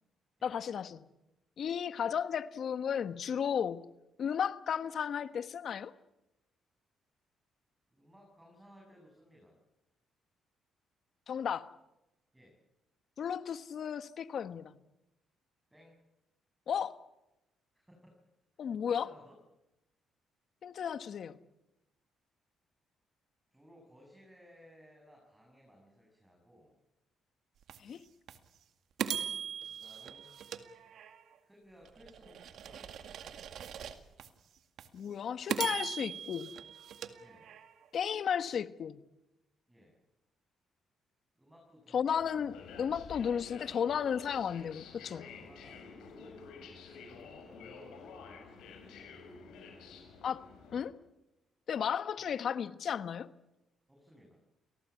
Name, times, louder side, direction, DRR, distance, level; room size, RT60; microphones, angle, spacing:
voice 1, 0.4-1.0 1.6-3.8 4.2-5.9 11.3-11.7 13.2-14.7 16.7-17.0 18.6-19.1 20.6-21.4 27.8-28.0 34.9-36.5 37.9-39.0 41.9-45.3 50.2-50.9 51.7-53.3, left 8 dB, 60° left, 1.3 m, -34 dB
voice 2, 7.9-9.6 12.3-12.6 15.7-16.0 17.7-18.2 18.5-19.4 23.5-26.8 29.7-30.3 31.4-33.0 37.2-37.5 39.7-40.0 41.4-42.6 45.4-46.5 46.9-49.2 53.9-54.4, equal, 10° right, 7.6 m, -60 dB
sound 1, 27.7-27.8 28.3-28.4 29.0-31.3 31.9-34.3 34.8-34.9 35.5-37.9, right 8 dB, 70° right, 2.0 m, -40 dB
sound 2, 42.2-50.9, left 5 dB, 80° left, 7.2 m, -50 dB
29.0 x 18.5 x 8.5 m
cardioid pair, 90°, 0 cm